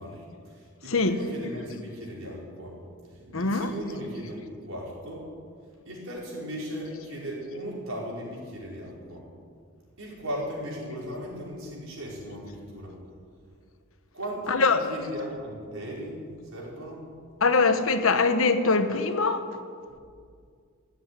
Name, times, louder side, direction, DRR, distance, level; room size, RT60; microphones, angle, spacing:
voice 1, 0.0-2.7 3.1-5.3 5.9-9.2 10.0-12.9 14.1-16.2 16.5-17.0 19.9-20.0, equal, 75° right, 5.1 m, -37 dB
voice 2, 3.3-3.7 14.5-14.9 17.4-19.5, left 4 dB, 75° left, 1.0 m, -23 dB
15.0 x 8.1 x 9.5 m
head